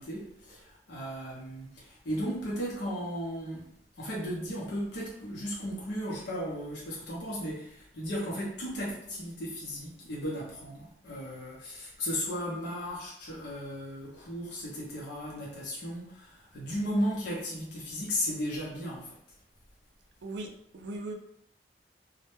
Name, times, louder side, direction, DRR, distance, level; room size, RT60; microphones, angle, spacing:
voice 1, 0.0-3.7 4.0-19.2, equal, 75° left, -6 dB, 0.6 m, -35 dB
voice 2, 20.2-21.1, right 2 dB, 70° right, 4 dB, 0.4 m, -39 dB
2.1 x 2.0 x 3.0 m, 0.75 s
head